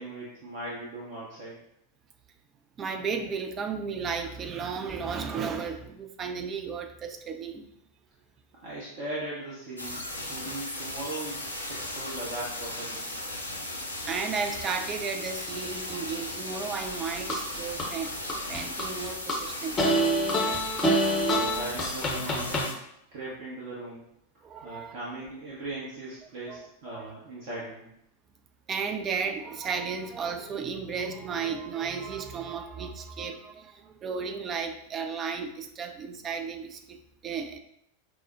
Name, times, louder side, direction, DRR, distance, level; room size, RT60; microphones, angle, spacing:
voice 1, 0.0-1.6 8.6-11.4 11.7-13.1 20.4-20.5 21.3-22.7 23.1-24.0 24.6-27.9, right 2 dB, 45° right, -6 dB, 0.8 m, -39 dB
voice 2, 2.8-7.7 14.1-18.2 18.5-19.9 24.4-24.9 26.5-27.1 28.7-37.6, right 5 dB, 25° right, 6 dB, 0.4 m, -34 dB
sound 1, 9.8-22.7, left 1 dB, 85° left, 0.5 m, -37 dB
sound 2, 16.8-17.9 18.3-19.4 19.8-22.7, equal, 20° left, 0.6 m, -26 dB
4.7 x 2.0 x 2.6 m, 0.76 s
figure-of-eight pair, 90°, 0 cm